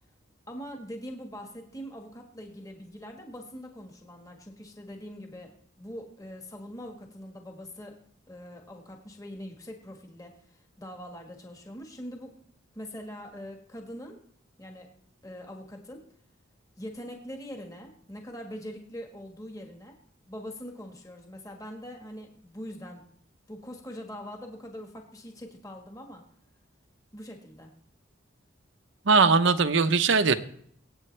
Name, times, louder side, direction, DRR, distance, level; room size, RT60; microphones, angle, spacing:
voice 1, 0.5-8.0 8.3-12.3 12.7-14.2 14.6-14.9 15.2-16.0 16.8-20.0 20.3-23.0 23.5-26.2 27.1-27.7, equal, 15° left, 3 dB, 1.5 m, -42 dB
voice 2, 29.1-30.3, right 4 dB, 70° right, 11 dB, 0.8 m, -20 dB
24.0 x 8.5 x 3.3 m, 0.65 s
head